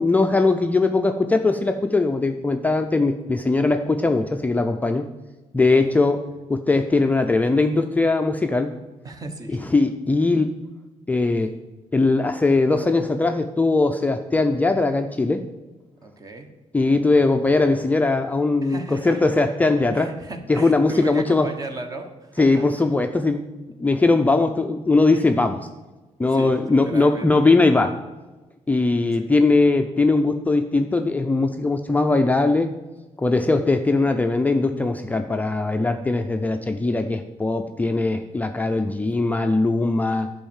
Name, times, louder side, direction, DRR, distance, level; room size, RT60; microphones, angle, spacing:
voice 1, 0.0-5.0 5.5-6.2 6.5-8.7 9.7-10.5 11.1-11.6 11.9-15.4 16.7-20.1 20.5-21.5 22.4-23.5 23.8-25.6 26.2-28.0 28.7-32.7 33.2-40.3, left 3 dB, 15° left, 6 dB, 0.5 m, -20 dB
voice 2, 3.6-3.9 5.7-6.4 9.0-9.7 16.0-16.5 18.6-19.2 19.9-22.7 26.2-27.5 29.0-29.3, right 2 dB, 30° right, 6 dB, 1.2 m, -36 dB
10.5 x 5.5 x 7.2 m, 1.2 s
cardioid pair, 145°, 12 cm